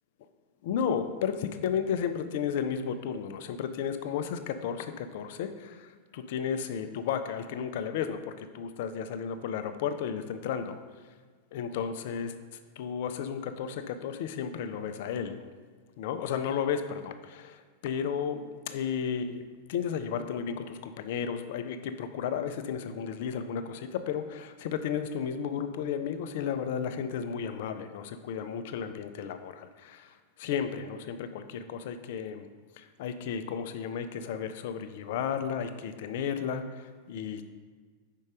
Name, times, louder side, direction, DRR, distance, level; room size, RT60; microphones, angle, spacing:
voice 1, 0.6-10.8 11.5-12.3 12.8-15.5 16.0-19.4 19.7-32.5 32.8-37.4, left 7 dB, 50° left, 9 dB, 0.4 m, -33 dB
5.2 x 4.5 x 5.0 m, 1.5 s
figure-of-eight pair, 90°, 0 cm